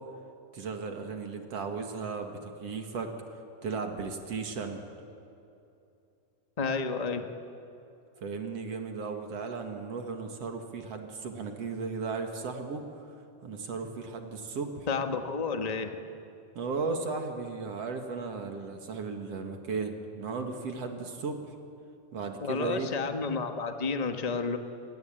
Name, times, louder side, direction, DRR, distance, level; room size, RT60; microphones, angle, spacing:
voice 1, 0.5-3.1 3.6-4.8 8.2-12.8 13.4-14.9 16.6-21.5 22.1-22.9, right 4 dB, 55° right, 4 dB, 3.0 m, -35 dB
voice 2, 6.6-7.3 14.9-16.0 22.4-24.6, left 4 dB, 40° left, 6 dB, 0.5 m, -31 dB
29.0 x 22.0 x 9.0 m, 2.7 s
omnidirectional pair, 3.5 m